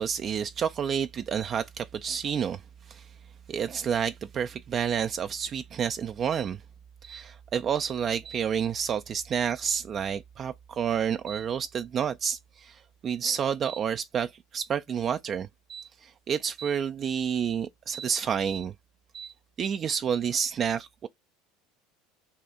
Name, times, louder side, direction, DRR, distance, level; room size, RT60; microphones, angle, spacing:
voice 1, 0.0-2.6 2.9-3.1 3.5-6.6 7.0-18.7 19.1-19.3 19.6-21.1, right 7 dB, 40° right, 0.3 m, -29 dB
4.1 x 2.5 x 3.5 m
hypercardioid pair, 75°, 0 cm